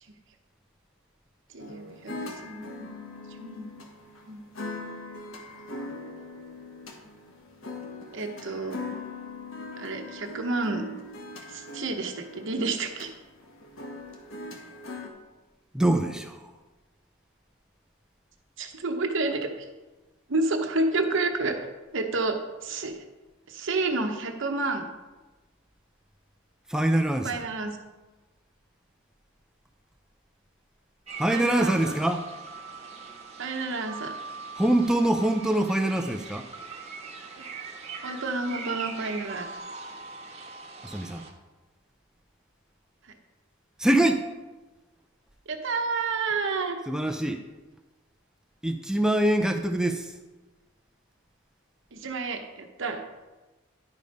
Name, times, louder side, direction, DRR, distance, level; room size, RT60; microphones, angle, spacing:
voice 1, 1.5-2.1 2.4-2.9 3.4-3.7 4.3-4.5 8.1-8.8 9.8-10.9 11.5-13.1 18.6-19.6 20.3-21.6 21.9-22.9 23.5-24.9 27.2-27.7 31.3-31.8 33.4-34.1 37.4-37.5 38.0-39.5 45.5-46.8 51.9-53.0, right 3 dB, 65° right, 4 dB, 0.9 m, -30 dB
sound 1, 1.6-15.1, left 2 dB, 75° left, 1.3 m, -41 dB
voice 2, 15.7-16.5 26.7-27.4 31.2-32.3 34.6-36.5 40.8-41.2 43.8-44.3 46.9-47.4 48.6-50.1, right 1 dB, 5° right, 5 dB, 0.4 m, -24 dB
sound 2, 31.1-41.3, right 4 dB, 30° right, 1.2 m, -41 dB
10.5 x 5.1 x 5.3 m, 1.2 s
head